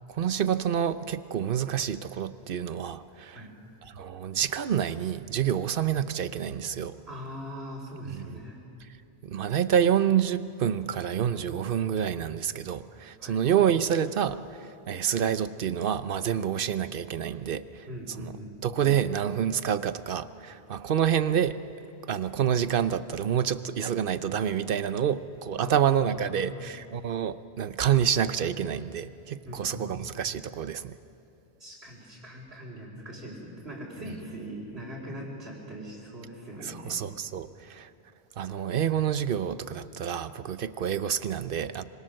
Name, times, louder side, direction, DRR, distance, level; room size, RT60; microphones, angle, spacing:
voice 1, 0.1-3.4 4.0-7.0 8.1-8.4 9.2-14.4 14.9-17.6 18.2-18.3 18.6-21.6 22.1-30.9 36.6-37.9 38.4-41.8, right 9 dB, 60° right, 13 dB, 0.9 m, -28 dB
voice 2, 7.1-8.6 13.2-13.4 17.9-18.5 25.6-26.8 29.4-30.1 31.6-37.0, equal, 85° right, -7 dB, 4.3 m, -41 dB
26.0 x 25.0 x 6.5 m, 2.6 s
omnidirectional pair, 1.0 m